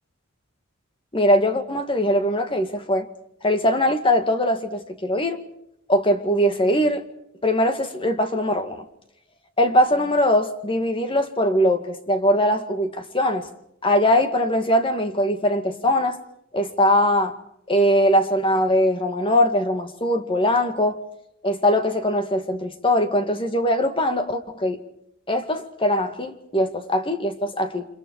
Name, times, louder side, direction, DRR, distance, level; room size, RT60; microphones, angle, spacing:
voice 1, 1.1-3.1 3.4-5.4 5.9-7.0 7.4-8.8 9.6-13.5 13.8-16.2 16.5-17.3 17.7-21.0 21.4-24.8 25.3-27.9, left 1 dB, 25° left, 2.2 m, -21 dB
30.0 x 26.5 x 4.8 m
head